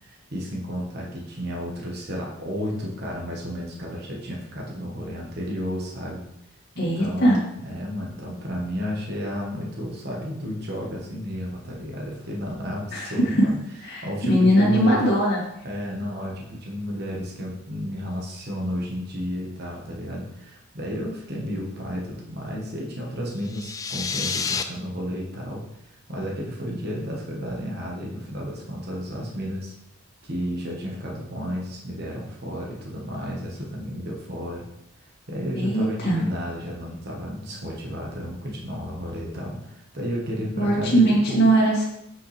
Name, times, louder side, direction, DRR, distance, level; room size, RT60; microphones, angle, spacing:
voice 1, 0.0-6.2 6.8-7.4 7.6-13.5 14.0-15.1 15.6-29.7 30.2-34.6 35.3-41.5, equal, 50° right, -2 dB, 1.4 m, -32 dB
voice 2, 6.8-7.4 12.9-13.1 13.4-13.5 13.8-15.4 35.6-36.2 40.6-41.8, right 1 dB, 50° left, -5 dB, 2.4 m, -20 dB
sound 1, 23.4-24.6, left 5 dB, 15° left, 0.3 m, -29 dB
8.3 x 5.5 x 3.4 m, 0.79 s
head